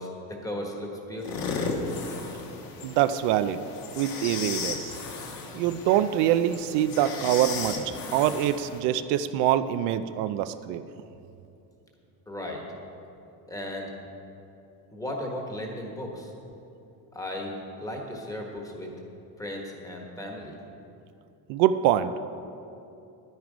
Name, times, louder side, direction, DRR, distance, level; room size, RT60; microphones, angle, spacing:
voice 1, 0.0-1.6 12.3-12.6 13.5-13.9 14.9-16.3 17.1-18.9 19.4-20.6, left 1 dB, 10° left, 0 dB, 1.4 m, -36 dB
sound 1, 1.2-8.8, left 4 dB, 55° left, 1.4 m, -35 dB
voice 2, 2.8-3.6 3.9-5.0 5.5-10.9 21.5-22.3, right 11 dB, 80° right, 11 dB, 0.6 m, -25 dB
11.0 x 9.5 x 5.1 m, 2.7 s
cardioid pair, 150°, 41 cm